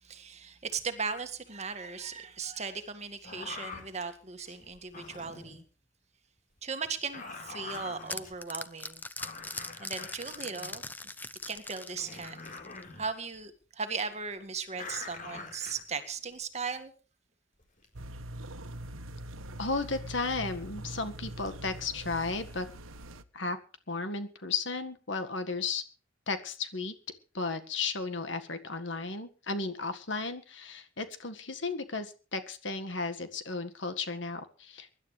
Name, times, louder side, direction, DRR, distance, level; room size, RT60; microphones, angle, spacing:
voice 1, 0.0-5.6 6.6-9.0 9.8-11.1 11.5-12.4 12.9-16.9, right 5 dB, 35° right, 1.9 m, -37 dB
sound 1, 3.2-3.9 4.4-5.6 6.6-8.4 8.9-9.0 9.2-10.9 11.6-11.7 11.9-13.1 14.7-16.4 17.6-17.9, left 3 dB, 40° left, 4.3 m, -44 dB
sound 2, 7.4-12.9, left 3 dB, 10° left, 0.7 m, -41 dB
sound 3, 17.9-23.2, right 1 dB, 85° right, 1.2 m, -43 dB
voice 2, 19.6-22.7 23.3-23.6 23.9-25.8 26.3-26.9 27.3-35.0, left 4 dB, 65° left, 1.8 m, -34 dB
24.0 x 12.0 x 3.4 m
head